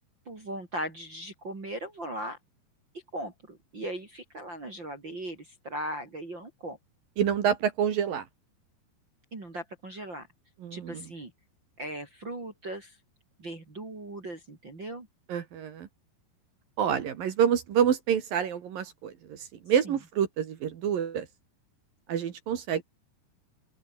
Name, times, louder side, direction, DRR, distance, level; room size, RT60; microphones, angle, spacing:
voice 1, 0.3-2.4 3.1-6.8 9.3-10.3 10.7-11.3 11.8-13.0 13.4-15.1, right 1 dB, 25° right, 4.5 m, -38 dB
voice 2, 7.2-8.3 10.6-11.1 15.3-15.9 16.8-21.3 22.1-22.8, right 8 dB, 60° right, 3.3 m, -27 dB
open air
omnidirectional pair, 5.0 m